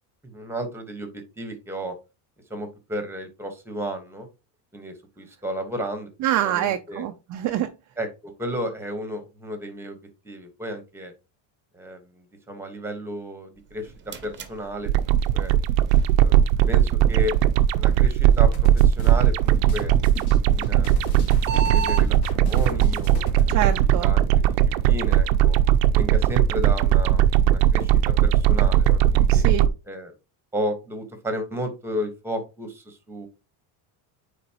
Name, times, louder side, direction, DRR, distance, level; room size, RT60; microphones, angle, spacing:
voice 1, 0.2-1.9 2.5-4.3 4.7-6.1 6.4-7.0 8.0-10.0 10.2-11.1 11.7-13.9 14.2-15.5 16.2-16.4 16.7-17.3 17.8-19.9 20.4-21.0 21.7-23.6 24.0-24.4 24.8-25.6 25.9-29.4 29.9-30.1 30.5-33.3, equal, 5° right, 7 dB, 1.2 m, -33 dB
voice 2, 6.2-7.7 23.5-24.1 29.3-29.7, right 12 dB, 40° right, 7 dB, 0.4 m, -25 dB
sound 1, 13.6-22.1, right 6 dB, 25° right, 0.8 m, -37 dB
sound 2, 14.9-29.7, right 11 dB, 75° right, 0.7 m, -19 dB
sound 3, 18.5-23.7, left 4 dB, 50° left, 2.4 m, -35 dB
9.2 x 3.9 x 2.9 m, 0.28 s
cardioid pair, 150°, 48 cm